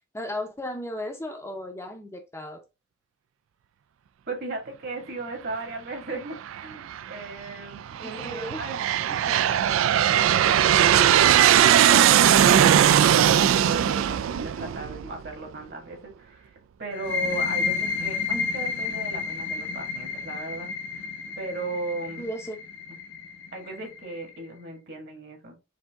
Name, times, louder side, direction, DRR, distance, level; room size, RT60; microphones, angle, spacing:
voice 1, 0.1-2.6 8.0-8.6 9.1-9.2 14.6-14.7 22.2-22.6, left 1 dB, 15° left, 0.6 m, -35 dB
voice 2, 4.3-8.8 9.3-16.5 16.8-21.1 21.4-22.3 22.9-23.0 23.5-25.5, right 2 dB, 55° right, 1.7 m, -37 dB
Aircraft, 6.5-7.0 7.7-15.3, right 10 dB, 80° right, 0.3 m, -19 dB
sound 1, 16.9-24.4, left 5 dB, 65° left, 0.7 m, -31 dB
4.9 x 2.7 x 3.4 m
head